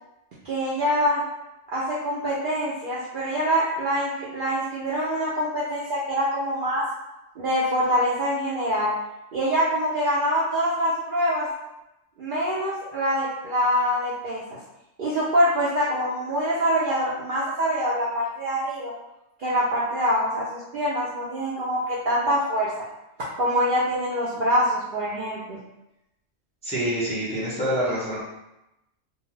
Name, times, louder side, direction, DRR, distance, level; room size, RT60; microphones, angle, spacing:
voice 1, 0.4-1.2 1.7-6.8 7.4-8.9 9.3-11.5 12.2-14.6 15.0-18.9 19.4-22.7 23.4-25.6, equal, 60° right, -7 dB, 0.5 m, -25 dB
voice 2, 26.6-28.3, equal, 5° left, -9 dB, 0.5 m, -26 dB
2.4 x 2.2 x 3.1 m, 0.92 s
omnidirectional pair, 1.3 m